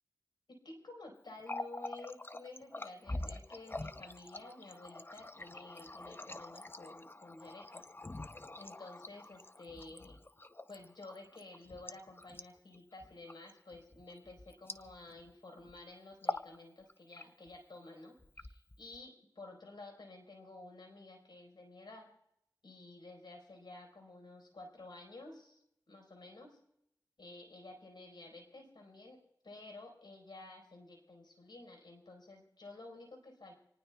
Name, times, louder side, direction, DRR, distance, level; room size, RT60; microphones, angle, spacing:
voice 1, 0.5-7.9 8.6-10.2 10.7-22.1 22.6-26.6 27.2-29.2 29.4-33.5, left 2 dB, 80° left, 3 dB, 4.5 m, -52 dB
Water tap faucet, 1.3-15.3 15.6-15.8 16.1-16.6 16.9-17.5 18.2-19.0, left 2 dB, 30° left, 0.7 m, -45 dB
27.5 x 19.0 x 2.3 m, 0.78 s
wide cardioid pair, 60°, 8 cm